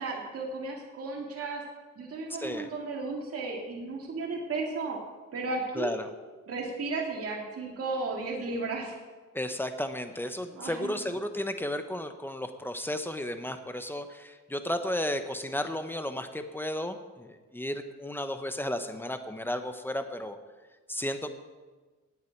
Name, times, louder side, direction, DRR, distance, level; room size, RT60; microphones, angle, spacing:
voice 1, 0.0-1.6 2.0-5.0 5.3-6.0 6.5-8.9 10.5-11.0, right 3 dB, 50° right, -1 dB, 2.2 m, -34 dB
voice 2, 5.8-6.1 9.3-20.4 20.9-21.3, left 1 dB, 5° left, 8 dB, 1.1 m, -33 dB
18.5 x 8.4 x 4.7 m, 1.3 s
cardioid pair, 90°, 30 cm